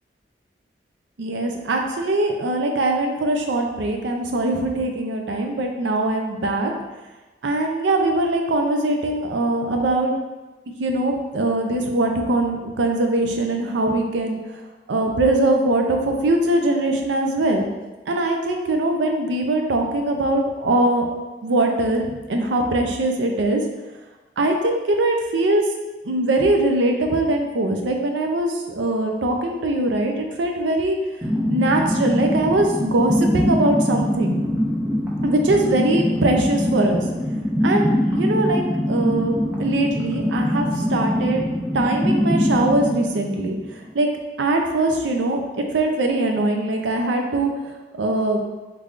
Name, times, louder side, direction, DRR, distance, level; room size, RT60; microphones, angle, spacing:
voice 1, 1.2-6.7 7.4-10.1 10.8-14.4 14.9-17.7 18.1-21.1 21.4-23.6 24.4-25.6 26.0-31.0 31.5-34.4 35.2-37.0 37.6-41.4 41.7-43.6 43.9-44.1 44.4-45.4 45.7-47.5 48.0-48.4, right 2 dB, 90° right, 3 dB, 0.5 m, -21 dB
sound 1, 31.2-43.9, equal, 10° right, 0.5 m, -23 dB
3.6 x 3.2 x 2.4 m, 1.2 s
head